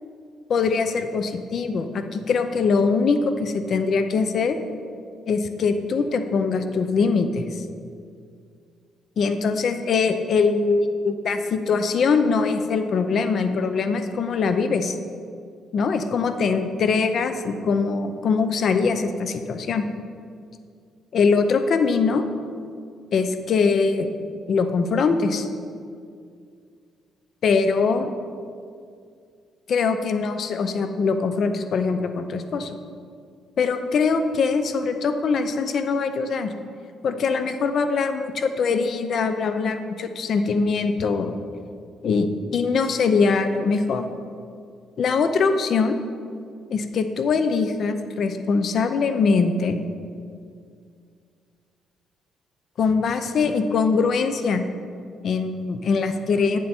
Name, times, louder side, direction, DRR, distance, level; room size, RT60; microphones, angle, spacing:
voice 1, 0.5-4.6 5.3-7.6 9.2-15.0 15.7-19.8 21.1-22.3 23.1-24.1 24.5-25.5 27.4-28.1 29.7-32.8 33.6-36.5 37.0-41.4 42.0-44.1 45.0-46.0 46.7-49.8 52.8-54.6 55.2-56.6, left 4 dB, 50° left, 8 dB, 0.6 m, -22 dB
9.1 x 7.2 x 4.4 m, 2.3 s
cardioid pair, 130°, 0 cm